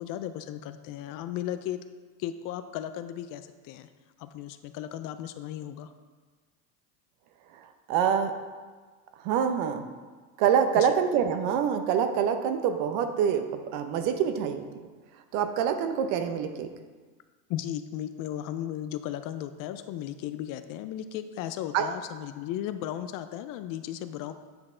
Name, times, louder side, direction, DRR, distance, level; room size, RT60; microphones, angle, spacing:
voice 1, 0.0-1.8 2.2-3.9 4.2-5.9 10.8-10.9 17.5-24.3, left 11 dB, 45° left, 10 dB, 0.4 m, -35 dB
voice 2, 7.5-8.3 9.2-9.8 10.4-13.5 13.7-14.6 15.3-16.7 21.7-21.8, right 8 dB, 60° right, 8 dB, 0.8 m, -26 dB
8.8 x 4.1 x 4.3 m, 1.5 s
supercardioid pair, 105°, 46 cm